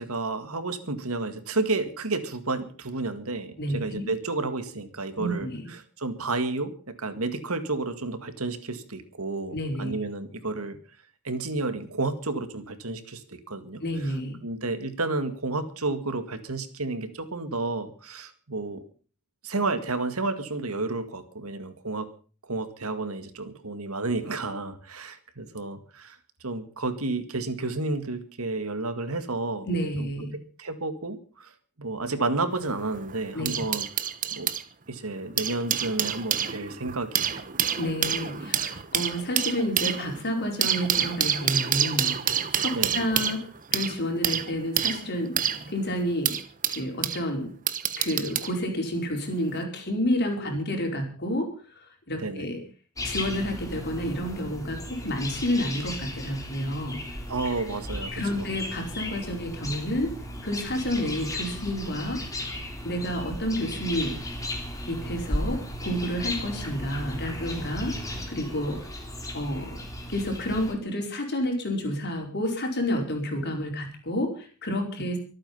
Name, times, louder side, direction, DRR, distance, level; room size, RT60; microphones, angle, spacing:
voice 1, 0.0-6.7 7.0-10.8 11.2-13.8 14.4-18.8 19.4-22.1 22.5-26.2 26.4-29.7 30.0-30.1 30.6-31.5 31.8-33.9 34.3-34.5 34.9-37.4 42.7-43.0 50.4-50.6 52.2-52.5 57.3-58.1 58.4-58.6, right 3 dB, 75° right, 10 dB, 2.0 m, -31 dB
voice 2, 3.6-4.1 5.2-5.7 9.5-9.9 13.8-14.4 29.6-30.3 33.3-33.6 37.8-42.1 42.5-45.3 45.7-46.4 46.7-47.5 48.0-51.5 51.7-52.6 53.0-57.0 58.1-60.1 60.4-62.2 62.5-62.6 62.8-64.2 64.9-67.9 68.3-68.8 69.3-69.8 70.1-75.2, equal, 50° left, 3 dB, 5.0 m, -30 dB
sound 1, 32.5-34.6 35.2-47.2 47.7-48.5 49.4-49.6, right 9 dB, 35° right, 1.2 m, -28 dB
sound 2, 53.0-70.7, left 1 dB, 15° left, 3.4 m, -35 dB
24.5 x 9.0 x 5.6 m, 0.41 s
head